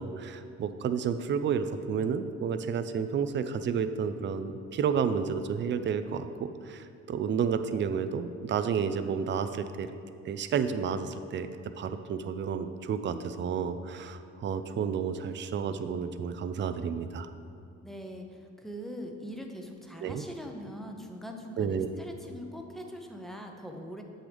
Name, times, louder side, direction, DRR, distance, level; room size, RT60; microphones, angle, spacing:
voice 1, 0.0-9.9 10.3-11.5 11.8-17.3 20.0-20.2 21.6-21.9, right 6 dB, 40° right, 10 dB, 0.4 m, -31 dB
voice 2, 17.8-24.0, equal, ahead, 2 dB, 0.8 m, -42 dB
7.7 x 6.2 x 3.4 m, 2.5 s
cardioid pair, 90°, 30 cm